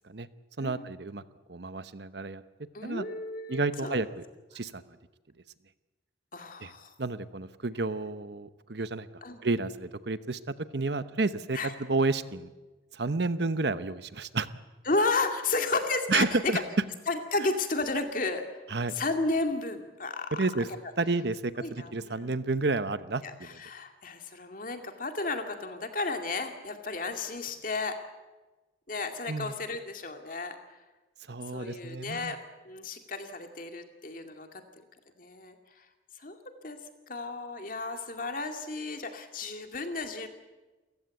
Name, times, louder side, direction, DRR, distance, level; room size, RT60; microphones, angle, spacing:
voice 1, 0.6-1.2 1.5-2.4 2.8-3.1 3.5-4.2 4.5-4.8 6.6-6.7 7.0-9.1 9.4-12.5 12.9-14.5 16.1-16.6 18.7-18.9 20.3-20.7 21.0-23.6 29.3-29.5 31.3-32.3, right 3 dB, 60° right, 13 dB, 0.9 m, -31 dB
voice 2, 2.7-4.0 6.3-6.9 9.2-9.4 11.5-11.7 14.9-16.6 17.1-18.6 18.9-20.8 21.6-22.4 23.2-28.0 28.9-30.8 31.5-32.4 32.6-34.6 35.2-35.9 36.2-36.4 36.6-36.8 37.1-40.3, left 3 dB, 45° left, 6 dB, 2.3 m, -33 dB
29.0 x 15.5 x 8.3 m, 1.2 s
head